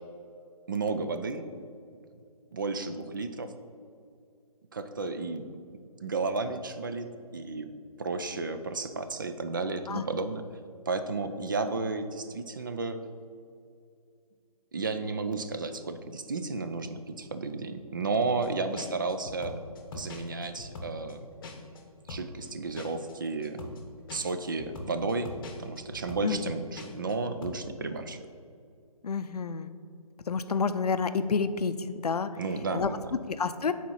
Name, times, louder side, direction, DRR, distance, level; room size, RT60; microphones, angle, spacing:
voice 1, 0.7-1.4 2.5-3.5 4.7-5.4 6.0-7.7 8.0-10.4 10.9-13.0 14.7-19.6 19.9-21.3 22.1-23.6 24.1-25.3 25.6-28.2 32.4-33.1, right 3 dB, 35° right, 9 dB, 0.4 m, -32 dB
sound 1, 18.4-18.5 18.7-21.8 22.1-27.1 27.4-27.6, left 3 dB, 35° left, 0.9 m, -42 dB
voice 2, 29.0-29.7 30.3-32.3 32.7-32.9 33.3-33.7, left 5 dB, 80° left, 11 dB, 0.5 m, -29 dB
7.3 x 4.2 x 5.5 m, 2.4 s
figure-of-eight pair, 155°, 20 cm